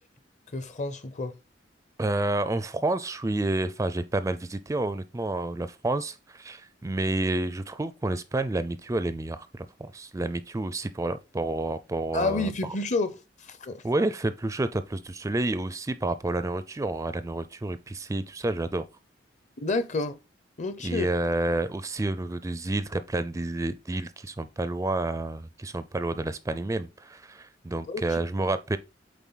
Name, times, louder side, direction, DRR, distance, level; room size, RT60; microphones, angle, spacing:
voice 1, 0.5-1.3 12.1-13.2 13.5-13.8 19.6-20.2 20.6-21.1 27.9-28.2, left 3 dB, 40° left, 0.7 m, -29 dB
voice 2, 2.0-12.7 13.8-18.8 20.8-28.8, right 2 dB, 15° right, 0.4 m, -29 dB
8.3 x 3.8 x 3.9 m
head